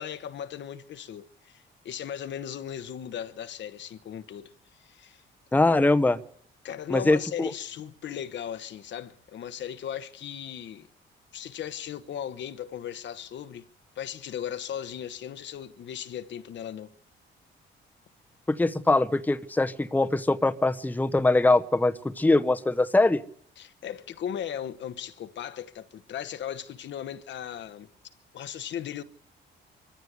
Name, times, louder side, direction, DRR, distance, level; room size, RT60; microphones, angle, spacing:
voice 1, 0.0-4.5 4.8-5.2 6.6-10.9 11.3-13.6 14.0-16.9 23.6-27.9 28.3-29.0, left 9 dB, 65° left, 1.1 m, -37 dB
voice 2, 5.5-6.2 6.9-7.2 18.5-23.2, left 2 dB, 10° left, 0.9 m, -22 dB
23.5 x 14.5 x 8.1 m
cardioid pair, 90°, 20 cm